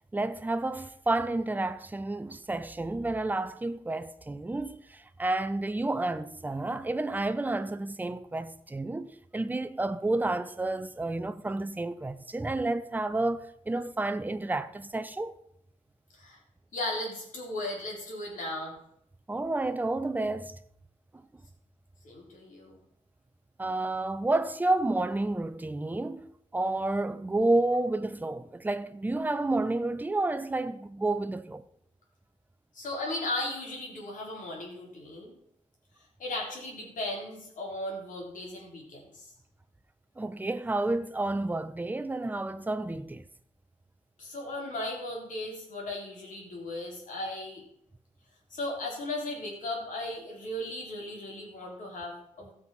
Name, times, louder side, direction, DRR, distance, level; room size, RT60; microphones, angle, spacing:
voice 1, 0.1-15.4 19.3-20.5 23.6-26.2 26.5-31.6 40.2-43.2, right 2 dB, 15° right, 0.6 m, -30 dB
voice 2, 16.7-18.8 22.0-22.8 32.7-35.3 36.2-39.3 44.2-47.6 48.5-52.5, left 1 dB, 80° left, 3.9 m, -36 dB
15.0 x 6.2 x 5.6 m
wide cardioid pair, 135°, 13 cm